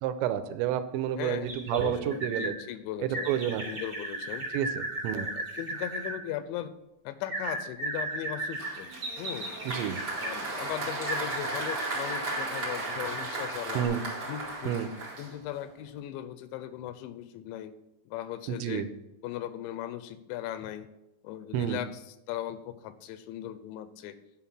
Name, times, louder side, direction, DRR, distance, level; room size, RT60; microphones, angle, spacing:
voice 1, 0.0-2.5 3.3-3.6 4.5-4.7 5.0-5.3 9.7-10.0 13.7-14.0 14.7-14.9 18.5-18.9 21.5-21.8, right 10 dB, 85° right, 10 dB, 3.0 m, -29 dB
voice 2, 1.2-4.5 5.1-6.7 7.1-8.9 9.2-9.5 10.2-13.9 14.3-14.7 15.2-17.7 18.1-18.9 19.2-20.9 21.2-22.0 22.3-24.2, left 12 dB, 90° left, 12 dB, 3.0 m, -38 dB
sound 1, 1.4-2.5 3.1-6.2 7.3-10.4 11.1-13.3 13.8-13.9, right 2 dB, 20° right, 3.4 m, -36 dB
Applause, 8.6-15.7, right 2 dB, 45° right, 1.3 m, -36 dB
10.0 x 5.8 x 5.9 m, 0.89 s
omnidirectional pair, 5.2 m